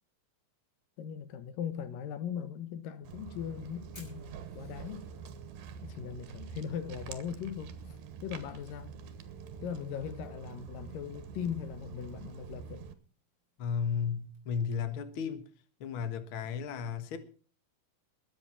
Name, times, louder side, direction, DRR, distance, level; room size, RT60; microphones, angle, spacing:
voice 1, 1.0-5.1 5.8-8.9 9.6-12.9, left 8 dB, 75° left, 2.8 m, -39 dB
Fire, 2.9-14.4, equal, 15° left, 6.1 m, -65 dB
Walk footsteps, 3.0-12.9, right 6 dB, 75° right, 3.0 m, -46 dB
voice 2, 13.6-15.5 15.8-17.2, left 6 dB, 50° left, 1.6 m, -34 dB
21.0 x 7.9 x 5.7 m
omnidirectional pair, 4.1 m